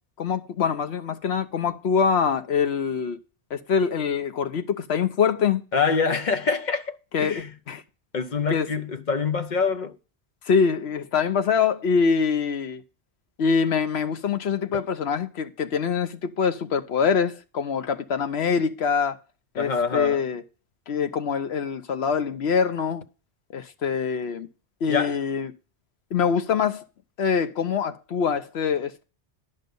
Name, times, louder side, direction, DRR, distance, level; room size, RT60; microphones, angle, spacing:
voice 1, 0.2-3.2 3.5-5.6 7.1-7.8 8.5-8.7 10.5-12.8 13.4-19.2 19.5-20.4 20.9-23.0 23.5-24.5 24.8-25.5 26.1-26.8 27.2-29.0, left 6 dB, 75° left, 1.1 m, -24 dB
voice 2, 5.7-7.5 8.1-10.0 14.7-14.8 19.6-20.2 24.9-25.2, left 5 dB, 50° left, 0.7 m, -25 dB
10.5 x 5.6 x 5.3 m
omnidirectional pair, 1.1 m